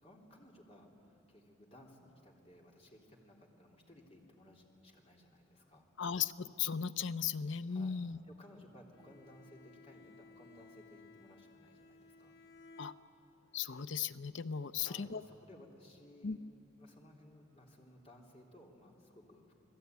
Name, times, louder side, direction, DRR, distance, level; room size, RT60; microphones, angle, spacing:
voice 1, 0.0-5.9 7.7-8.0 8.3-12.3 14.8-16.4 16.7-19.5, left 1 dB, 30° left, -1 dB, 3.4 m, -59 dB
voice 2, 6.0-8.2 12.8-12.9 13.5-15.2 16.2-16.4, left 7 dB, 70° left, 13 dB, 0.7 m, -37 dB
Bowed string instrument, 8.9-13.5, left 3 dB, 85° left, 2.9 m, -59 dB
28.5 x 19.5 x 9.4 m, 2.7 s
head